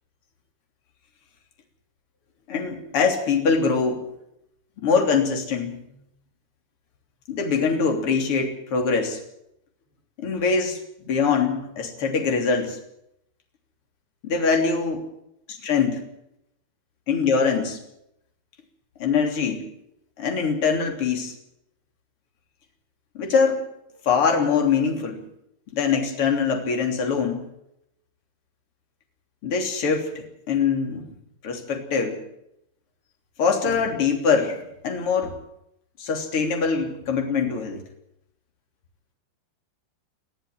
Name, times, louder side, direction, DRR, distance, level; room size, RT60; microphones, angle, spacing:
voice 1, 2.5-4.0 4.8-5.8 7.3-9.2 10.2-12.8 14.2-15.0 15.6-16.0 17.1-17.8 19.0-19.6 20.2-21.3 23.2-23.6 24.0-25.2 25.7-27.5 29.4-31.1 31.4-32.2 33.4-35.4 36.0-37.8, left 5 dB, 30° left, 3 dB, 3.5 m, -23 dB
21.0 x 13.5 x 9.2 m, 0.80 s
omnidirectional pair, 5.5 m